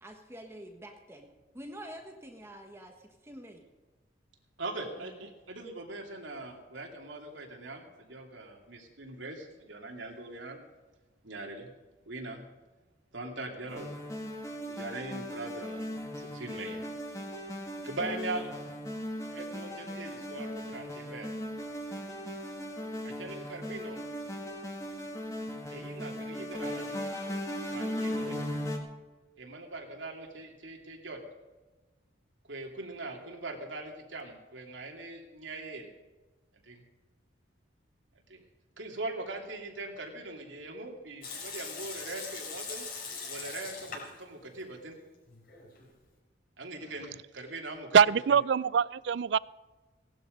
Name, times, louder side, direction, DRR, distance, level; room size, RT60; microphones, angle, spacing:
voice 1, 0.0-1.3 1.5-3.6 5.0-5.3, equal, 15° right, 1.3 m, -47 dB
voice 2, 4.6-10.6 11.2-11.7 12.1-12.4 13.1-13.9 14.7-15.9 16.1-16.8 17.8-18.5 19.3-21.3 23.0-24.0 25.7-27.0 27.7-28.4 29.4-31.2 32.5-35.9 36.6-36.8 38.3-38.4 38.8-42.9 43.3-45.0 46.6-47.9, right 2 dB, 90° right, 2.9 m, -41 dB
sound 1, 13.7-28.8, equal, 15° left, 2.0 m, -38 dB
Water tap faucet / Sink (filling or washing) / Liquid, 41.2-44.2 44.5-44.6 45.3-45.9, left 4 dB, 50° left, 5.3 m, -41 dB
voice 3, 47.9-49.4, right 7 dB, 65° right, 0.4 m, -23 dB
18.0 x 12.0 x 5.3 m
head